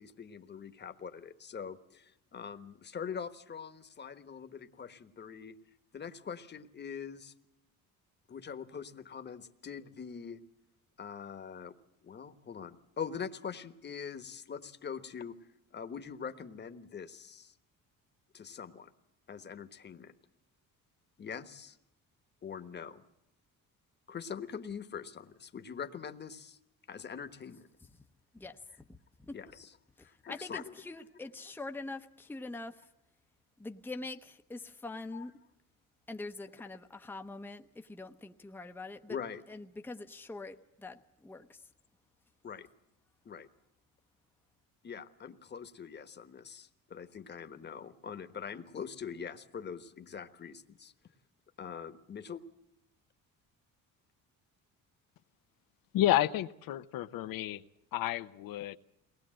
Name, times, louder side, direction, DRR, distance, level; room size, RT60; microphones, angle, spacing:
voice 1, 0.0-5.5 5.9-7.3 8.3-10.4 11.0-11.7 12.0-15.4 15.7-17.5 18.3-18.9 19.3-20.1 21.2-21.8 22.4-23.0 24.1-26.6 26.9-27.7 29.3-29.7 30.0-30.6 35.1-35.2 39.1-39.4 42.4-42.7 43.2-43.5 44.8-50.9 51.6-52.4, left 7 dB, 30° left, 1.3 m, -43 dB
voice 2, 28.3-29.4 30.0-32.9 33.6-35.4 36.1-39.2 39.5-41.7, left 2 dB, 5° left, 0.8 m, -44 dB
voice 3, 55.9-57.6 57.9-58.8, left 13 dB, 75° left, 0.9 m, -30 dB
22.5 x 19.5 x 7.7 m
cardioid pair, 135°, 35 cm